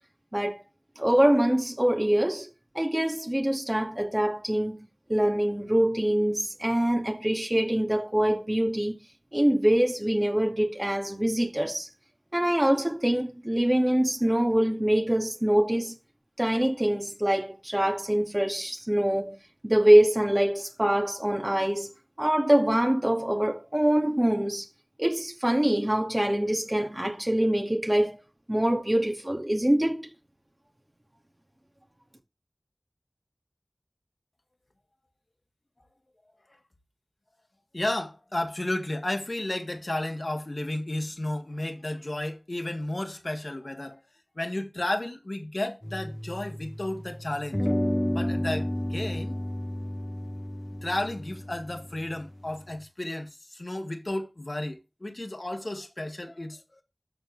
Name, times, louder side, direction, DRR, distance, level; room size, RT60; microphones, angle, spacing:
voice 1, 1.0-2.5 2.7-9.0 9.3-11.9 12.3-15.9 16.4-19.4 19.6-24.7 25.0-28.2 28.5-30.1, right 1 dB, 20° right, 2.3 m, -24 dB
voice 2, 37.7-44.0 44.4-47.6 48.1-49.4 50.8-56.6, left 1 dB, 55° left, 1.8 m, -33 dB
sound 1, 45.8-47.0 47.5-52.7, left 1 dB, 25° left, 1.7 m, -32 dB
13.5 x 4.5 x 3.4 m
wide cardioid pair, 50°, 0 cm